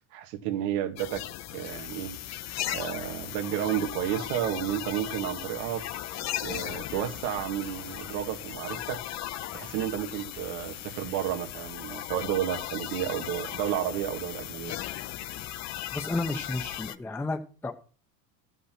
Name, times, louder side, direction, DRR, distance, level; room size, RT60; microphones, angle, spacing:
voice 1, 0.1-1.2 1.5-2.1 2.7-5.9 6.4-9.0 9.5-14.7, right 11 dB, 80° right, 1.7 m, -31 dB
sound 1, 1.0-17.0, left 13 dB, 40° left, 0.6 m, -37 dB
voice 2, 15.9-17.7, left 2 dB, 5° left, 0.7 m, -32 dB
13.5 x 5.6 x 5.8 m
cardioid pair, 140°, 42 cm